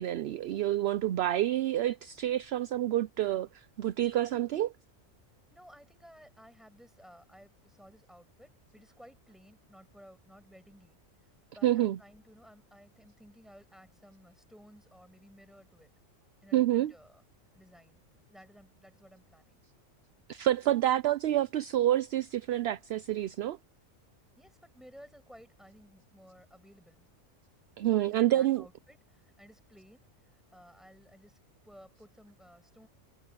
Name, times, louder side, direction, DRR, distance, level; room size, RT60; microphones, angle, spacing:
voice 1, 0.0-4.7 11.6-12.0 16.5-16.9 20.3-23.6 27.8-28.6, right 13 dB, 65° right, 0.7 m, -28 dB
voice 2, 5.5-11.0 11.6-15.9 16.4-17.2 17.5-18.0 18.3-19.6 24.4-27.1 27.8-31.4 31.6-32.9, equal, ahead, 7.1 m, -56 dB
omnidirectional pair, 1.4 m